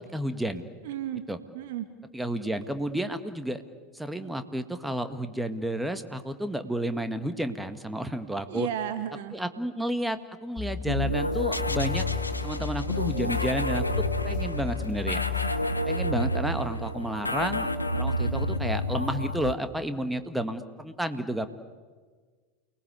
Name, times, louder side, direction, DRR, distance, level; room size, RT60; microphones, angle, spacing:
voice 1, 0.0-0.6 1.3-1.4 2.1-3.6 3.9-8.7 9.3-12.1 12.4-13.8 14.2-15.3 15.8-17.7 17.9-21.5, right 1 dB, 5° right, 9 dB, 1.8 m, -31 dB
voice 2, 0.8-1.2 1.5-1.9 8.5-9.4, right 11 dB, 60° right, 8 dB, 2.1 m, -33 dB
sound 1, 10.6-15.6, left 4 dB, 15° left, 7.5 m, -35 dB
sound 2, 10.9-19.5, left 1 dB, 90° left, 1.1 m, -29 dB
29.5 x 20.0 x 8.2 m, 1.5 s
figure-of-eight pair, 85°, 0 cm